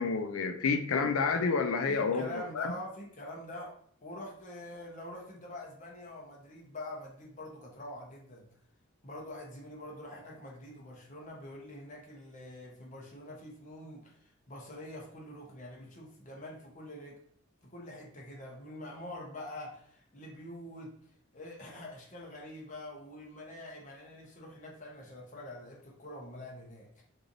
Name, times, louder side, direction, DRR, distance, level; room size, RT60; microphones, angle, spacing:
voice 1, 0.0-2.3 2.5-2.7, left 4 dB, 85° left, 7 dB, 0.5 m, -29 dB
voice 2, 1.8-8.5 9.0-17.2 17.6-20.9 21.3-27.0, left 1 dB, 35° left, -2 dB, 0.9 m, -45 dB
3.2 x 2.6 x 3.8 m, 0.63 s
head